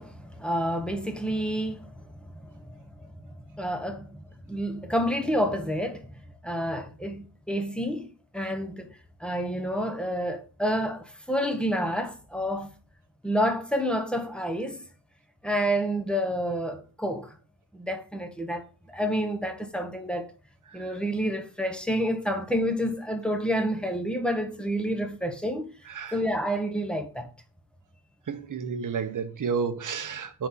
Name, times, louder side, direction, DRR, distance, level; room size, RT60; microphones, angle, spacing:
voice 1, 0.0-1.9 2.2-2.3 2.8-3.1 3.5-6.1 6.4-8.9 9.2-12.7 13.2-14.8 15.4-17.3 17.7-18.7 18.9-20.3 20.7-25.7 26.1-27.3, equal, ahead, 0.8 m, -29 dB
voice 2, 28.3-30.5, right 6 dB, 45° right, 0.8 m, -31 dB
5.8 x 4.1 x 6.0 m
wide cardioid pair, 170°, 44 cm